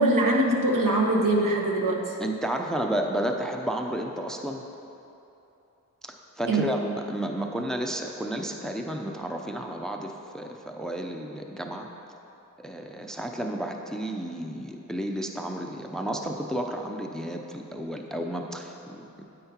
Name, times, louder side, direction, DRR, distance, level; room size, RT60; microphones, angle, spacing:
voice 1, 0.0-2.2 6.5-6.8, right 1 dB, 75° right, 0 dB, 1.1 m, -23 dB
voice 2, 2.2-4.6 6.0-11.9 12.6-19.2, right 1 dB, ahead, 3 dB, 0.5 m, -32 dB
9.5 x 8.8 x 2.9 m, 3.0 s
wide cardioid pair, 90°, 33 cm